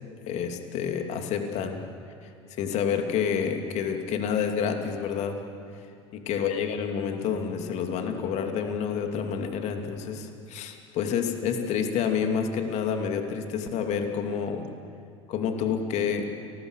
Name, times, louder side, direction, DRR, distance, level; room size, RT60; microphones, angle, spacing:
voice 1, 0.3-1.8 2.6-5.4 6.1-14.7 15.3-16.3, left 7 dB, 50° left, 5 dB, 2.7 m, -28 dB
30.0 x 19.5 x 6.7 m, 2.4 s
figure-of-eight pair, 75°, 15 cm